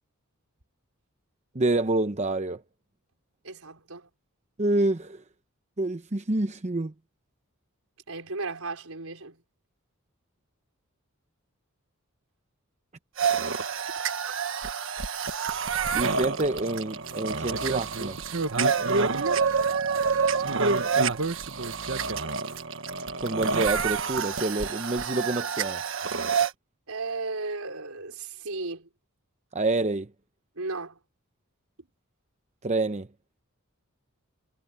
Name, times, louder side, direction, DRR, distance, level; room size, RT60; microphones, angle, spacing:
voice 1, 1.5-2.6 4.6-5.2 5.8-6.9 15.9-18.2 23.2-25.8 29.5-30.1 32.6-33.1, right 2 dB, 30° right, 0.8 m, -27 dB
voice 2, 3.4-4.1 8.1-9.4 19.1-19.5 26.9-28.9 30.6-31.0, right 3 dB, 80° right, 4.5 m, -35 dB
sound 1, 13.2-26.5, right 5 dB, 65° right, 1.4 m, -27 dB
head